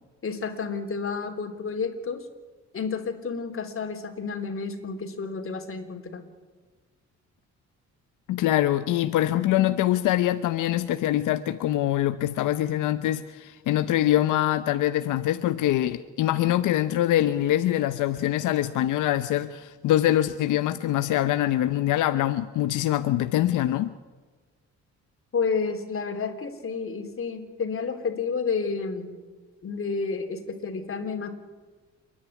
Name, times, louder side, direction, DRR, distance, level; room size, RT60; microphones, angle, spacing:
voice 1, 0.2-2.3 2.7-6.3 25.3-29.2 29.6-31.3, left 5 dB, 45° left, 6 dB, 3.4 m, -30 dB
voice 2, 8.3-23.9, left 13 dB, 85° left, 11 dB, 0.8 m, -24 dB
29.0 x 10.5 x 9.8 m, 1.4 s
cardioid pair, 90°, 30 cm